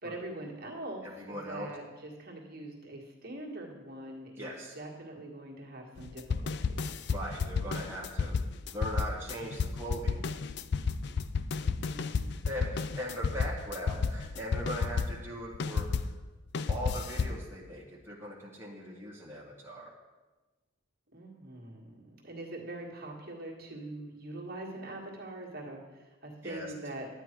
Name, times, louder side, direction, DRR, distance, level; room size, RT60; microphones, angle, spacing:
voice 1, 0.0-6.7 11.6-12.4 21.1-27.2, right 1 dB, 45° right, -1 dB, 1.7 m, -43 dB
voice 2, 1.2-1.7 4.4-4.8 7.1-8.4 8.7-10.2 12.4-15.9 16.7-19.9 26.4-26.7, equal, 10° right, -5 dB, 1.2 m, -39 dB
sound 1, 6.0-16.2 16.5-17.4, left 5 dB, 50° left, 0.4 m, -32 dB
11.0 x 9.0 x 4.5 m, 1.2 s
head